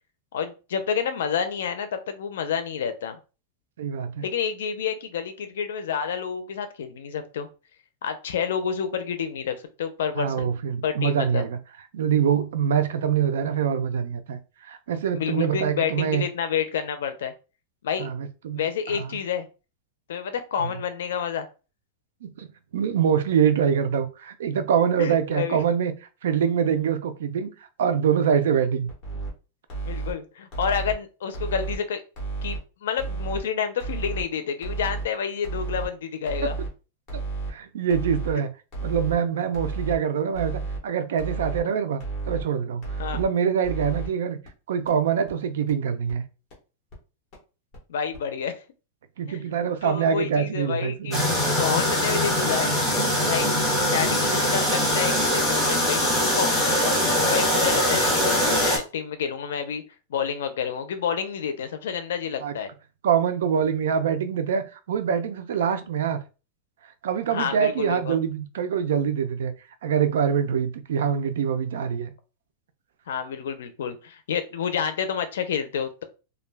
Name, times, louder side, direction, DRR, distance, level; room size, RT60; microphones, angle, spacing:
voice 1, 0.3-3.2 4.2-7.5 8.0-10.5 10.8-11.4 15.1-17.3 17.8-18.1 18.5-19.5 20.1-21.5 25.0-25.6 29.9-32.0 32.4-36.5 43.0-43.2 47.9-48.6 49.3-49.5 49.8-51.1 51.6-52.7 53.3-53.5 53.8-57.0 57.3-59.8 60.1-62.7 67.3-68.2 73.1-76.0, left 7 dB, 80° left, 0.5 m, -29 dB
voice 2, 3.8-4.2 10.2-11.6 11.9-16.2 18.0-19.1 20.6-20.7 22.2-22.5 22.7-25.9 26.2-28.9 36.4-36.5 37.5-38.5 38.8-42.0 42.3-44.4 44.7-46.2 49.2-51.3 62.4-62.5 63.0-66.2 67.0-69.5 69.8-72.1, right 7 dB, 80° right, 0.4 m, -24 dB
sound 1, 28.9-29.3 29.7-30.1 30.5-30.9 31.3-31.8 32.2-32.6 33.0-33.4 33.8-34.2 34.6-35.1 35.4-35.9 36.3-36.7 37.1-37.5 37.9-38.3 38.7-39.2 39.5-40.0 40.3-40.8 41.2-41.6 42.0-42.4 42.8-43.3 43.6-44.1 44.5-44.6 44.9-45.0 45.3-45.4 45.7-45.8 46.1-46.2 46.5-46.6 46.9-47.0 47.3-47.4 47.7-47.8 48.1-48.2, right 4 dB, 25° left, 1.0 m, -31 dB
sound 2, 51.1-58.8, equal, ahead, 0.8 m, -22 dB
2.3 x 2.2 x 3.3 m
supercardioid pair, 180°, 0 cm